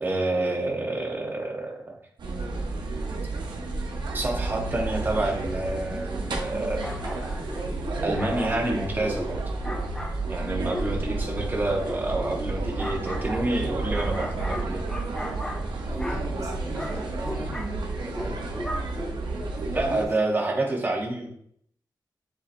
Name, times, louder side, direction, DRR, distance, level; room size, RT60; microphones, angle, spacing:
voice 1, 0.0-1.9 4.1-6.8 8.0-9.4 10.3-14.8 19.7-21.3, right 2 dB, 25° right, 1 dB, 0.8 m, -28 dB
sound 1, 2.2-20.1, right 3 dB, 90° right, 0.7 m, -31 dB
sound 2, 6.8-19.4, left 1 dB, 10° left, 0.5 m, -38 dB
voice 2, 15.8-17.6 18.0-18.5 19.5-20.1, right 1 dB, 45° right, -3 dB, 1.5 m, -38 dB
6.6 x 2.9 x 2.5 m, 0.68 s
wide cardioid pair, 115°, 8 cm